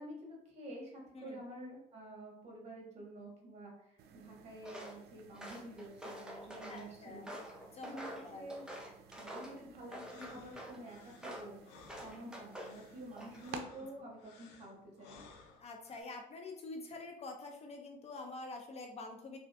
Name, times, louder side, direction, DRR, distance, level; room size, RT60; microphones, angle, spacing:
voice 1, 0.0-7.3 7.8-8.1 8.3-8.6 9.2-11.6 12.0-15.3, right 1 dB, 40° right, -2 dB, 1.3 m, -49 dB
sound 1, 4.0-13.6, right 6 dB, 70° right, 0.4 m, -55 dB
Walk footsteps, 4.6-5.0 5.3-6.8 7.3-9.6 9.9-10.8 11.2-11.5 11.9-12.8 13.1-13.6, equal, 5° right, 0.6 m, -47 dB
voice 2, 6.7-7.3 7.7-8.5 10.2-10.3 15.6-19.4, left 3 dB, 40° left, 3 dB, 0.4 m, -47 dB
sound 2, 9.9-16.0, left 4 dB, 90° left, 0.5 m, -59 dB
3.3 x 2.4 x 2.4 m, 0.77 s
cardioid pair, 110°, 17 cm